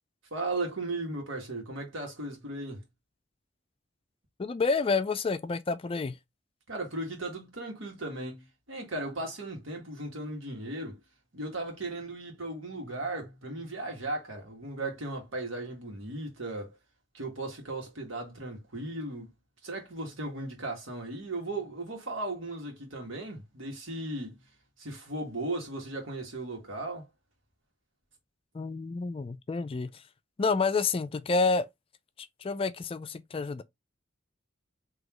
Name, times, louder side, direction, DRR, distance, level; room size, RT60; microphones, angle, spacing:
voice 1, 0.3-2.8 6.7-11.0 11.3-16.7 17.1-19.3 19.6-24.4 24.8-27.1, right 2 dB, 85° right, 1.7 m, -36 dB
voice 2, 4.4-6.2 28.5-30.0 30.4-31.7 32.4-33.6, left 4 dB, 30° left, 0.4 m, -29 dB
3.8 x 3.0 x 3.0 m
head